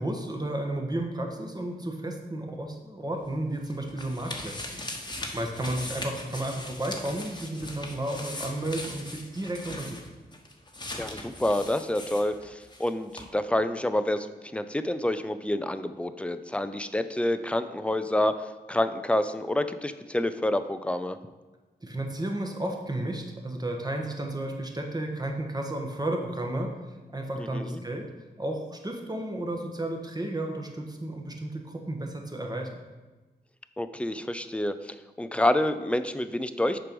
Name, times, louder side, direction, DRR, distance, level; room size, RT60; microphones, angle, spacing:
voice 1, 0.0-4.8 5.3-10.0 21.8-26.7 27.1-28.0 28.4-32.7, right 1 dB, 20° right, 2 dB, 1.3 m, -32 dB
sound 1, 3.2-12.9 13.1-13.2, left 1 dB, 25° left, 1.1 m, -40 dB
voice 2, 10.9-21.2 27.4-27.8 33.8-36.9, left 1 dB, 5° left, 11 dB, 0.5 m, -28 dB
6.6 x 4.7 x 5.2 m, 1.2 s
cardioid pair, 50°, 18 cm